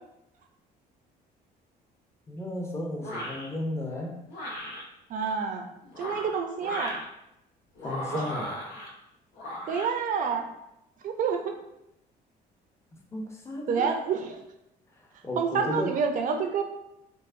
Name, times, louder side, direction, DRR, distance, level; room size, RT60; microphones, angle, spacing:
voice 1, 2.3-4.2 7.8-8.5 13.1-14.0 14.9-16.0, left 1 dB, 15° left, 1 dB, 0.6 m, -34 dB
sound 1, 3.0-3.5 4.3-4.8 5.8-7.1 7.8-8.9 9.4-9.9, left 1 dB, 85° left, 0.9 m, -36 dB
voice 2, 5.1-5.7 6.0-6.9 8.1-8.2 9.7-10.5 11.0-11.5 13.7-14.3 15.4-16.6, right 6 dB, 50° right, 5 dB, 0.5 m, -28 dB
4.6 x 2.1 x 2.5 m, 0.84 s
cardioid pair, 110°, 17 cm